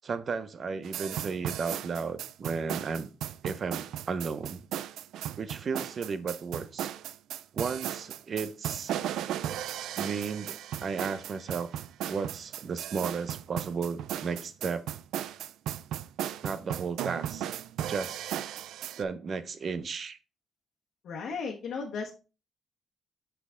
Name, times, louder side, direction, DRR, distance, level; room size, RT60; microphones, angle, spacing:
voice 1, 0.0-3.1 3.4-4.7 5.4-6.9 7.5-9.1 10.0-11.7 12.1-14.9 16.4-17.5 17.9-18.2 19.0-20.2, right 5 dB, 50° right, 0.7 m, -34 dB
sound 1, 0.8-19.0, right 11 dB, 80° right, 0.3 m, -36 dB
voice 2, 21.0-22.1, left 5 dB, 70° left, 1.2 m, -35 dB
6.1 x 5.8 x 3.7 m
cardioid pair, 90°, 0 cm